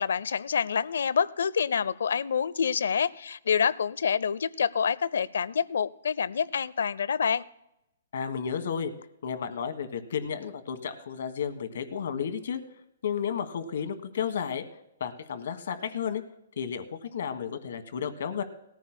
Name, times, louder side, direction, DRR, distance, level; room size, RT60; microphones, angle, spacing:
voice 1, 0.0-7.4, left 7 dB, 80° left, 19 dB, 0.5 m, -27 dB
voice 2, 8.1-8.9 9.2-12.6 13.0-14.6 15.0-16.2 16.6-18.4, left 7 dB, 65° left, 9 dB, 1.4 m, -32 dB
19.0 x 14.5 x 2.2 m, 0.85 s
hypercardioid pair, 165°, 0 cm